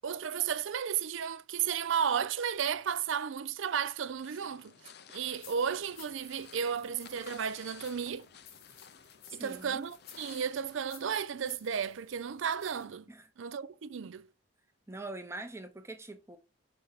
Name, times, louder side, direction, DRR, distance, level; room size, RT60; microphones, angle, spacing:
voice 1, 0.0-4.7 5.1-8.3 9.3-13.0 13.4-14.3, right 7 dB, 65° right, 0.4 m, -33 dB
sound 1, 4.2-10.8, left 7 dB, 50° left, 0.5 m, -54 dB
sound 2, 5.2-12.9, left 8 dB, 80° left, 1.5 m, -57 dB
voice 2, 9.3-9.8 13.1-13.3 14.9-16.4, right 2 dB, 15° right, 0.7 m, -43 dB
5.4 x 5.1 x 4.0 m
head